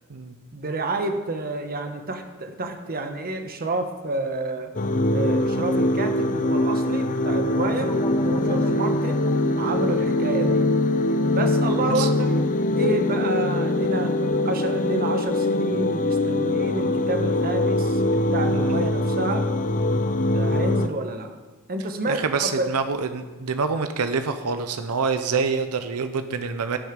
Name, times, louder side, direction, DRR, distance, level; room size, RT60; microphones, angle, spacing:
voice 1, 0.5-4.7 5.1-9.3 9.6-10.7 11.3-12.4 12.8-19.5 20.3-21.3 21.7-22.7, right 2 dB, 45° right, 6 dB, 1.2 m, -29 dB
sound 1, 4.7-20.9, left 1 dB, 35° left, 0.6 m, -23 dB
sound 2, 7.8-12.7, left 1 dB, 15° left, 1.2 m, -39 dB
voice 2, 18.5-18.8 22.1-26.8, right 5 dB, 85° right, 8 dB, 0.7 m, -26 dB
16.5 x 6.3 x 5.2 m, 1.3 s
head